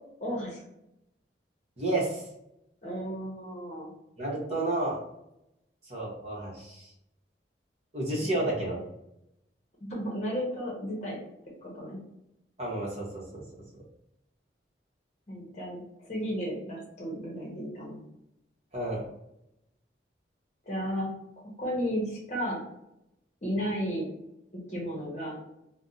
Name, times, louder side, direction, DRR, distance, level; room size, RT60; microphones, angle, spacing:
voice 1, 0.2-0.6 2.8-3.9 8.2-8.7 9.8-11.2 11.6-12.0 15.3-15.8 16.1-18.0 20.7-21.1 21.4-22.6 23.4-24.1 24.7-25.4, equal, 40° left, -4 dB, 0.8 m, -34 dB
voice 2, 1.8-2.2 4.2-5.0 5.9-6.9 7.9-8.8 12.6-13.4 18.7-19.0, right 2 dB, 35° right, -3 dB, 1.0 m, -31 dB
2.6 x 2.1 x 3.8 m, 0.84 s
head